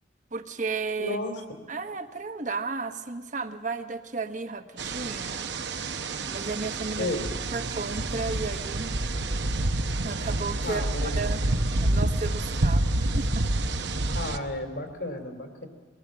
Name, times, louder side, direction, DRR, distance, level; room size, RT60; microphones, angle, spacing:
voice 1, 0.3-1.2 1.7-5.4 6.3-7.1 7.5-9.0 10.0-11.4 11.8-13.4, right 4 dB, 45° right, 8 dB, 1.2 m, -33 dB
voice 2, 1.0-1.3 7.0-7.3 10.6-11.2 14.1-15.7, left 2 dB, 70° left, 5 dB, 3.0 m, -32 dB
sound 1, 4.8-14.4, right 2 dB, 70° right, 1.0 m, -28 dB
22.5 x 19.0 x 7.6 m, 1.5 s
head